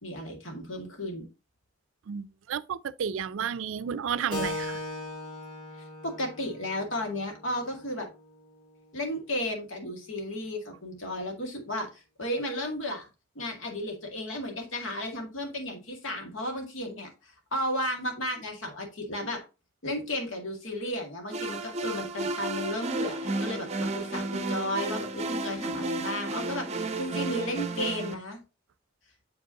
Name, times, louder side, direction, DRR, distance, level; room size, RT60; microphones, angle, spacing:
voice 1, 0.0-1.3 5.8-8.1 8.9-13.1 13.4-19.4 19.8-28.4, left 1 dB, 85° left, 1.9 m, -34 dB
voice 2, 2.1-4.8, right 7 dB, 90° right, 0.4 m, -32 dB
Keyboard (musical), 4.3-9.4, left 2 dB, 25° left, 2.1 m, -40 dB
sound 1, 21.3-28.2, right 2 dB, 35° right, 0.6 m, -32 dB
7.4 x 5.1 x 2.8 m
head